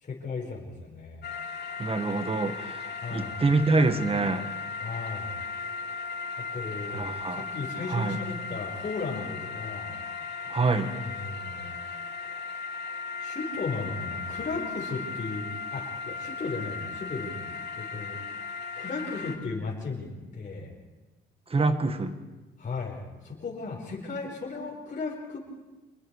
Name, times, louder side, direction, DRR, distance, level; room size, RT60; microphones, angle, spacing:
voice 1, 0.0-1.3 3.0-3.4 4.8-5.3 6.4-9.9 10.9-11.7 13.2-17.4 17.8-18.2 18.8-20.7 22.6-25.4, left 4 dB, 40° left, -2 dB, 5.1 m, -36 dB
sound 1, 1.2-19.4, left 4 dB, 60° left, 2.6 m, -37 dB
voice 2, 1.8-4.4 6.9-7.4 7.9-8.2 10.5-10.9 21.5-22.1, right 3 dB, 30° right, 9 dB, 1.8 m, -26 dB
26.5 x 21.5 x 4.9 m, 1.2 s
cardioid pair, 90°, 20 cm